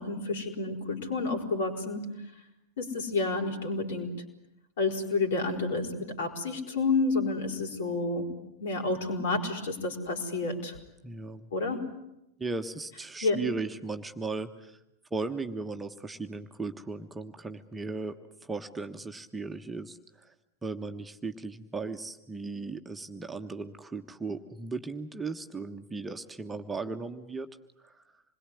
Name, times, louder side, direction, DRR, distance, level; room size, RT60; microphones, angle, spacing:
voice 1, 0.0-2.1 2.8-4.1 4.8-8.3 8.6-10.7 11.5-11.8 13.2-13.4, left 3 dB, 60° left, 3 dB, 5.0 m, -30 dB
voice 2, 11.0-11.5 12.4-14.8 15.1-18.1 18.4-20.3 20.6-27.5 27.8-28.0, right 3 dB, 10° right, 5 dB, 1.3 m, -37 dB
27.5 x 21.5 x 9.9 m, 0.88 s
figure-of-eight pair, 90°, 0 cm